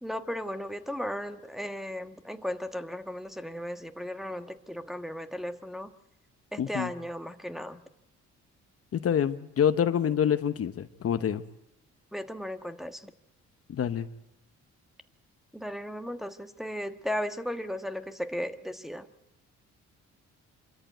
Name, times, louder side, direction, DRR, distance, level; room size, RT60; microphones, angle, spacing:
voice 1, 0.0-5.9 6.5-7.8 12.1-13.1 15.5-19.1, equal, ahead, 5 dB, 1.4 m, -36 dB
voice 2, 6.6-6.9 8.9-11.4 13.7-14.1, left 8 dB, 50° left, 10 dB, 0.9 m, -26 dB
26.0 x 13.5 x 9.2 m, 0.90 s
cardioid pair, 90°, 30 cm